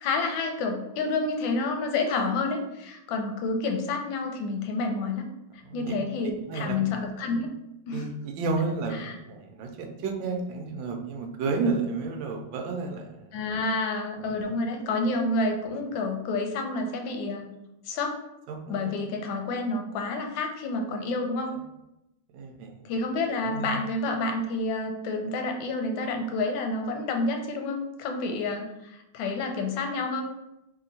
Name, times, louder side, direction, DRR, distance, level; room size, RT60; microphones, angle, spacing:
voice 1, 0.0-5.3 5.5-7.5 7.9-8.1 9.0-9.2 13.3-17.5 17.8-18.2 18.7-21.6 22.8-30.2, left 3 dB, 85° left, 3 dB, 1.4 m, -29 dB
voice 2, 5.6-6.0 6.5-6.8 7.9-13.3 14.2-14.3 15.6-15.7 18.5-18.9 22.3-22.9 23.4-23.7, right 4 dB, 80° right, 4 dB, 1.3 m, -32 dB
3.1 x 2.8 x 3.9 m, 0.91 s
omnidirectional pair, 2.1 m